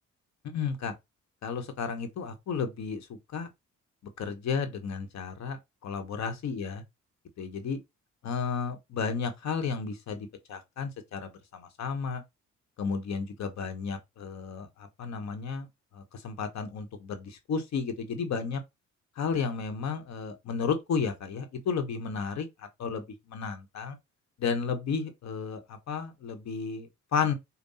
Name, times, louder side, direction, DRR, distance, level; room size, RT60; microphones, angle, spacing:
voice 1, 0.4-0.9 1.4-3.5 4.2-6.8 7.4-7.8 8.2-12.2 12.8-15.7 15.9-18.6 19.1-24.0 24.4-27.3, left 5 dB, 65° left, 1.1 m, -33 dB
5.4 x 2.2 x 4.1 m
cardioid pair, 90°, 30 cm